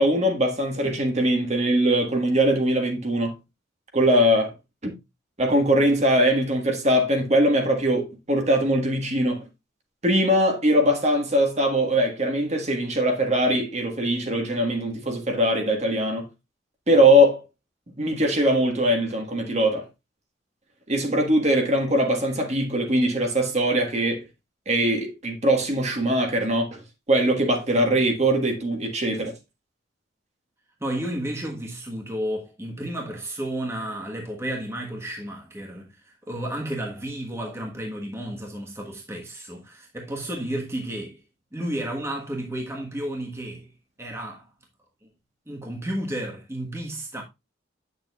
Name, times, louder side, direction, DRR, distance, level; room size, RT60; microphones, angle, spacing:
voice 1, 0.0-3.3 3.9-4.5 4.8-4.9 5.4-9.4 10.0-16.3 16.9-17.4 18.0-19.9 20.9-24.2 24.7-26.8 27.1-29.3, equal, 35° right, 1.6 m, -21 dB
voice 2, 30.8-41.2 41.5-43.7 44.0-44.5 45.0-45.1 45.5-47.2, right 1 dB, 15° right, 1.3 m, -32 dB
8.8 x 6.8 x 2.4 m
head